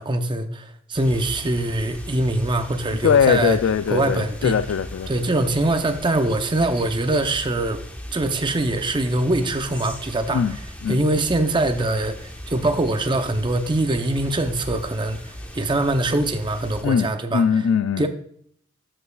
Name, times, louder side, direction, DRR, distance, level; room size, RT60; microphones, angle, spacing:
voice 1, 0.0-3.6 3.9-4.6 5.1-7.8 8.1-10.4 10.9-15.2 15.5-17.4 18.0-18.1, right 2 dB, 25° right, 7 dB, 0.6 m, -23 dB
sound 1, 0.9-16.8, equal, 5° left, 1.1 m, -38 dB
voice 2, 3.0-5.3 10.3-10.6 10.8-11.0 16.8-18.0, left 7 dB, 75° left, 12 dB, 0.3 m, -21 dB
12.5 x 5.6 x 2.3 m, 0.63 s
head